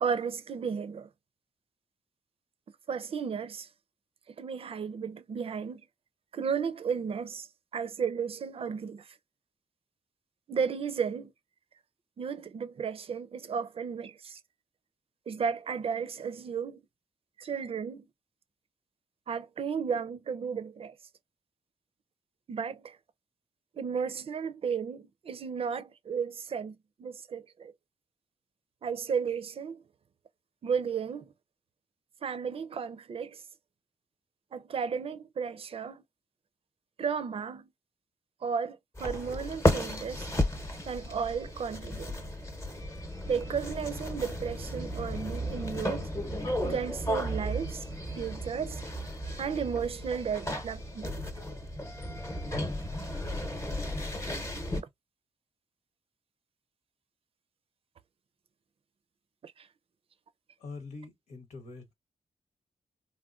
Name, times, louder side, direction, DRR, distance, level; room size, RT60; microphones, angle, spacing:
voice 1, 0.0-1.1 2.9-3.7 4.4-5.8 6.3-7.5 7.7-9.1 10.5-11.3 12.2-14.4 15.3-16.8 17.4-18.1 19.3-20.9 22.5-23.0 23.8-27.7 28.8-29.8 30.6-31.3 32.2-33.4 34.5-36.0 37.0-37.7 38.4-40.3 40.9-42.2 43.3-46.1 46.7-47.9 48.2-48.8 49.4-51.2 59.4-59.7, right 6 dB, 50° right, 0.5 m, -34 dB
sound 1, 38.9-54.8, equal, 25° left, 0.9 m, -34 dB
voice 2, 60.6-61.9, left 3 dB, 90° left, 1.1 m, -44 dB
3.5 x 2.1 x 2.4 m
cardioid pair, 75°, 12 cm